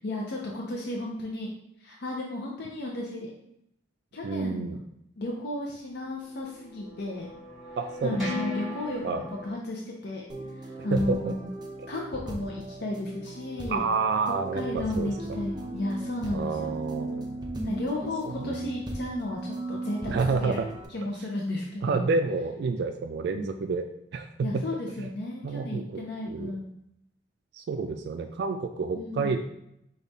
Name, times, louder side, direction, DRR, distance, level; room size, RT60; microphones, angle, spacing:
voice 1, 0.0-1.5 1.8-3.3 4.1-4.8 5.2-7.3 8.0-10.3 10.6-11.5 11.9-13.8 14.5-16.8 17.6-20.6 20.9-22.1 23.3-23.6 24.4-26.7 28.9-29.4, left 2 dB, 65° left, -1 dB, 0.6 m, -33 dB
voice 2, 4.2-4.8 7.8-8.2 9.0-9.2 10.8-11.3 11.8-11.9 13.7-15.1 16.3-17.5 18.4-18.6 20.1-20.7 21.8-23.9 24.1-24.6 25.0-25.1 25.4-26.5 27.5-29.4, right 4 dB, 65° right, 6 dB, 0.3 m, -29 dB
sound 1, 6.0-9.5, left 3 dB, ahead, 1.5 m, -38 dB
sound 2, 10.3-20.9, right 1 dB, 25° right, 0.6 m, -37 dB
5.2 x 2.4 x 4.0 m, 0.75 s
head